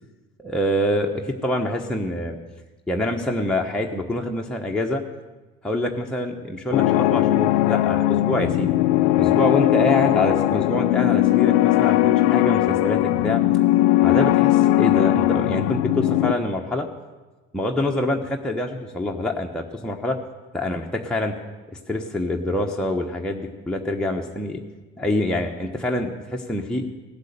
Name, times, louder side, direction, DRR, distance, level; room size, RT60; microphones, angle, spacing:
voice 1, 0.4-2.4 2.9-5.0 5.6-8.7 9.2-13.4 14.0-16.9 17.5-20.2 20.5-21.4 21.7-24.6 25.0-26.9, left 1 dB, ahead, 0 dB, 1.1 m, -25 dB
sound 1, 6.7-16.3, left 15 dB, 70° left, 0.5 m, -19 dB
16.0 x 8.1 x 6.8 m, 1.2 s
hypercardioid pair, 50°, 35 cm